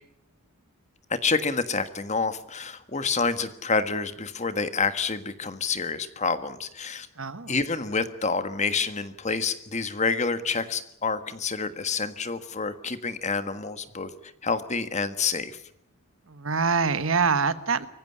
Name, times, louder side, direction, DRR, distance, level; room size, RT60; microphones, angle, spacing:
voice 1, 1.1-7.1 7.5-14.1 14.4-15.6, left 4 dB, 35° left, 11 dB, 1.5 m, -28 dB
voice 2, 7.2-7.5 16.3-17.9, right 5 dB, 65° right, 13 dB, 1.3 m, -25 dB
24.0 x 15.5 x 9.9 m, 0.75 s
head